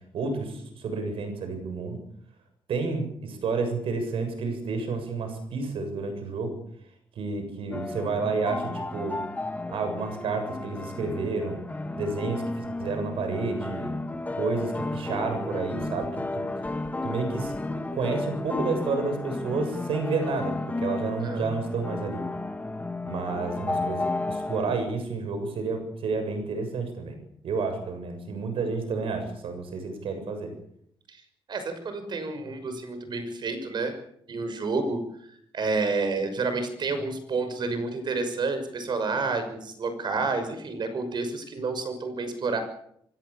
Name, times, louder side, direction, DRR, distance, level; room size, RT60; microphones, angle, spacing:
voice 1, 0.1-2.0 2.7-6.6 7.2-9.2 9.7-11.6 12.0-13.9 14.4-16.5 17.0-17.5 17.9-22.2 23.0-27.2 27.4-30.5, right 4 dB, 70° right, 7 dB, 7.2 m, -30 dB
sound 1, 7.7-24.7, left 2 dB, 15° left, 2.1 m, -33 dB
voice 2, 31.5-33.9 34.3-35.0 35.5-42.6, right 3 dB, 50° right, 9 dB, 6.1 m, -29 dB
25.0 x 20.5 x 7.3 m, 0.70 s
cardioid pair, 110°, 9 cm